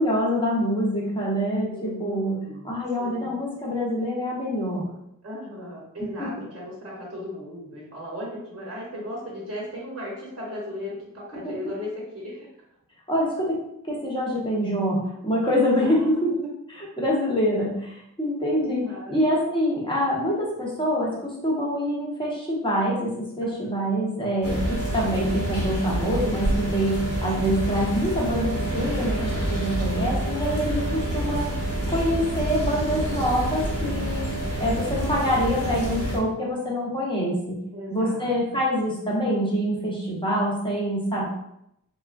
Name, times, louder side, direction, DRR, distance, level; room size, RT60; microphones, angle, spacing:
voice 1, 0.0-2.4 2.6-4.9 6.0-6.3 11.4-11.5 13.1-13.6 13.8-16.3 16.7-18.8 19.1-31.4 31.9-34.3 34.6-37.6 37.9-41.2, equal, 15° left, -5 dB, 1.0 m, -25 dB
voice 2, 1.7-2.7 3.0-3.4 5.2-12.5 15.4-16.5 18.5-19.2 23.4-24.0 33.7-34.1 37.7-38.6, left 1 dB, 40° right, -5 dB, 0.9 m, -37 dB
sound 1, 24.4-36.2, right 1 dB, 45° left, 1.0 m, -27 dB
3.5 x 2.1 x 2.4 m, 0.79 s
wide cardioid pair, 85°, 34 cm